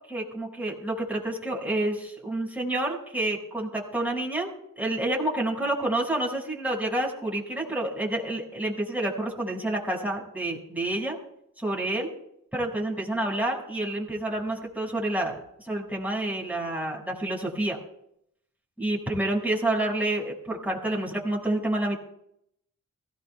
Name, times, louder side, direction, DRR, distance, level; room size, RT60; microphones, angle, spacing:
voice 1, 0.1-4.5 4.8-11.2 11.6-12.1 12.5-17.8 18.8-22.0, right 1 dB, 5° right, -2 dB, 5.8 m, -29 dB
23.0 x 17.0 x 2.3 m, 0.76 s
cardioid pair, 70°, 33 cm